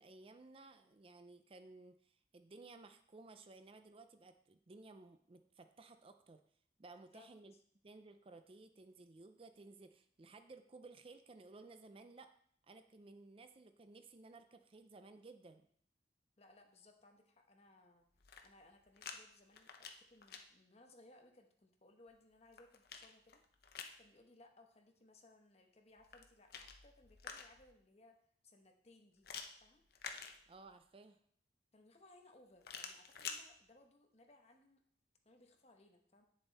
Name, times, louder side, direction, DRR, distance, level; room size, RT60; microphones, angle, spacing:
voice 1, 0.0-6.4 6.8-7.5 7.8-12.3 12.7-15.7 30.5-31.2, right 3 dB, 30° right, 8 dB, 0.4 m, -57 dB
voice 2, 16.4-18.1 18.4-23.4 24.0-28.2 28.4-29.3 29.6-29.8 31.7-34.8 35.2-36.2, left 2 dB, 35° left, 4 dB, 1.1 m, -65 dB
sound 1, 18.1-19.2 19.5-20.4 22.1-24.0 26.0-27.7 29.2-30.8 32.6-33.4, left 6 dB, 60° left, 0.8 m, -50 dB
9.2 x 6.9 x 4.1 m, 0.63 s
head